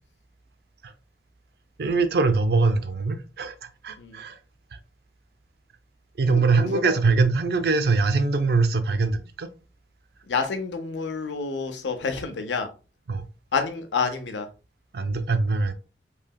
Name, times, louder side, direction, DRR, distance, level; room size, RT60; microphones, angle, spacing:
voice 1, 1.8-4.4 6.2-9.5 13.1-13.3 14.9-15.7, right 4 dB, 60° right, 0.4 m, -23 dB
voice 2, 6.3-6.9 10.3-12.7 13.5-14.5, left 5 dB, 85° left, 0.6 m, -28 dB
3.2 x 2.7 x 2.2 m
head